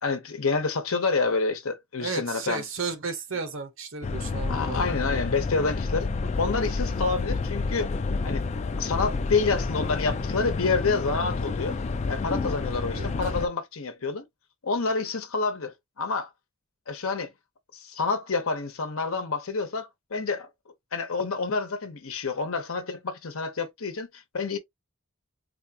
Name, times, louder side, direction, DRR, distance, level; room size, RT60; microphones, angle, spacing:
voice 1, 0.0-2.6 4.5-6.1 6.4-7.9 8.2-8.4 8.8-11.8 12.1-14.2 14.6-16.3 16.9-17.3 17.7-20.5 20.9-24.6, left 4 dB, 75° left, 0.9 m, -28 dB
voice 2, 2.0-5.2 12.9-13.1, right 5 dB, 60° right, 0.8 m, -34 dB
sound 1, 4.0-13.5, left 4 dB, 30° left, 0.3 m, -29 dB
4.2 x 2.4 x 2.8 m
head